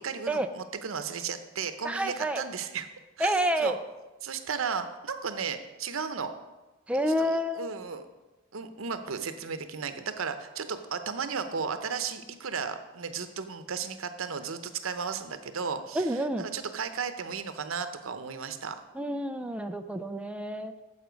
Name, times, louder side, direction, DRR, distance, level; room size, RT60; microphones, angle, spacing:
voice 1, 0.0-2.9 3.2-3.7 4.2-6.3 7.2-8.1 8.5-18.8, right 6 dB, 90° right, 9 dB, 0.7 m, -35 dB
voice 2, 1.8-2.4 3.2-3.8 6.9-7.7 15.9-16.4 19.0-20.7, right 1 dB, 5° right, 7 dB, 0.4 m, -28 dB
9.4 x 7.4 x 5.1 m, 1.1 s
head